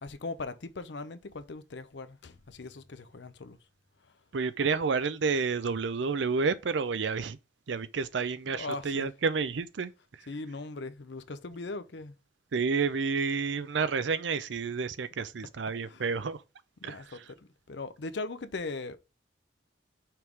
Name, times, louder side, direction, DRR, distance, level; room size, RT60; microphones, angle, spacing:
voice 1, 0.0-3.6 4.0-4.2 8.5-9.1 10.3-12.2 15.2-15.3 15.9-16.1 16.8-19.0, left 3 dB, 70° left, 0.6 m, -39 dB
voice 2, 4.3-7.4 7.7-9.9 12.5-16.4 16.8-17.1, right 5 dB, 80° right, 0.5 m, -30 dB
5.8 x 3.6 x 4.6 m
head